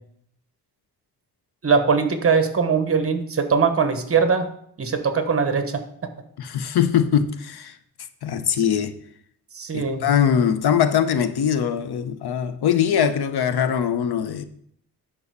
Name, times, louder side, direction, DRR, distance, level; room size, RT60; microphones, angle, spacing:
voice 1, 1.6-4.5 4.8-5.8 9.5-10.1, right 5 dB, 35° right, 1.2 m, -21 dB
voice 2, 6.4-7.7 8.2-8.9 9.7-14.4, left 8 dB, 85° left, 0.9 m, -21 dB
9.8 x 5.5 x 6.7 m
wide cardioid pair, 155°, 38 cm